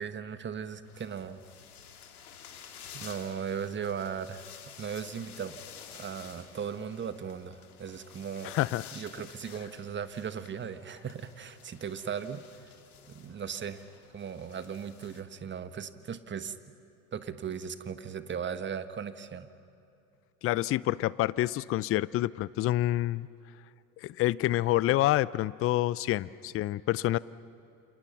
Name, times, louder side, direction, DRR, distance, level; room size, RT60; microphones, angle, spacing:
voice 1, 0.0-1.4 2.9-4.5 4.8-5.6 5.9-8.6 8.9-12.4 13.1-13.8 14.1-16.6 17.1-19.5, right 7 dB, 25° right, 11 dB, 1.4 m, -37 dB
sound 1, 0.8-15.2, left 8 dB, 80° left, 2.5 m, -51 dB
voice 2, 8.4-8.9 20.4-23.3 24.0-27.2, left 15 dB, 30° left, 20 dB, 0.6 m, -27 dB
30.0 x 28.5 x 6.0 m, 2.8 s
hypercardioid pair, 75°, 44 cm